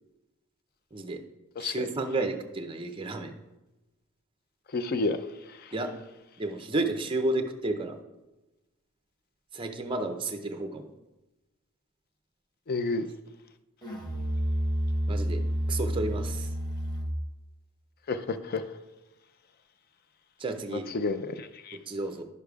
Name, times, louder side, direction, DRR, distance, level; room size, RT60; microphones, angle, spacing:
voice 1, 1.6-3.3 5.7-5.9 6.4-8.0 9.5-10.9 15.1-15.4 15.7-16.5 20.4-20.9 21.9-22.2, right 2 dB, 25° right, 0.5 m, -31 dB
voice 2, 4.7-5.2 12.7-13.0 18.1-18.6 20.7-21.8, left 3 dB, 45° left, 0.4 m, -30 dB
Musical instrument, 13.8-17.3, equal, 20° left, 1.0 m, -30 dB
11.0 x 6.5 x 2.3 m
head